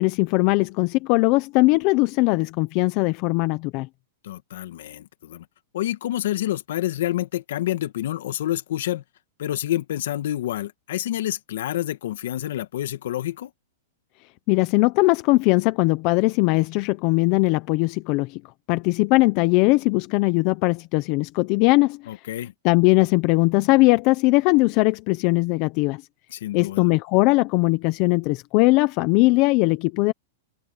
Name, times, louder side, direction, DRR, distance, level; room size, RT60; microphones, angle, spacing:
voice 1, 0.0-3.9 14.5-18.4 18.7-22.0 22.6-26.0 26.5-30.1, left 23 dB, 40° left, 0.7 m, -20 dB
voice 2, 4.2-5.5 5.7-9.0 9.4-13.5 22.1-22.5 26.3-26.9, left 13 dB, 70° left, 1.8 m, -28 dB
supercardioid pair, 150°, 0 cm